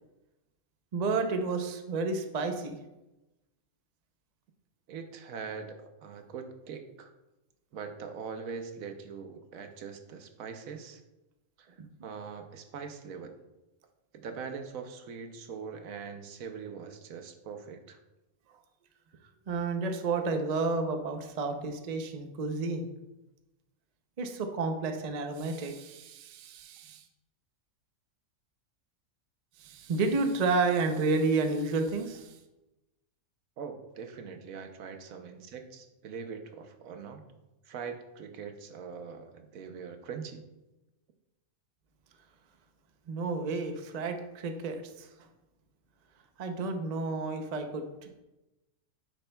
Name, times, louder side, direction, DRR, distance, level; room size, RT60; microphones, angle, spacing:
voice 1, 0.9-2.8 11.8-11.9 19.5-22.9 24.2-27.0 29.6-32.3 43.1-45.1 46.4-48.1, right 3 dB, 45° right, 5 dB, 0.5 m, -31 dB
voice 2, 4.9-7.1 7.7-11.0 11.6-13.4 14.1-18.0 33.6-37.2 37.6-40.4, right 6 dB, 75° right, 6 dB, 1.1 m, -42 dB
9.8 x 6.8 x 2.3 m, 1.0 s
omnidirectional pair, 1.5 m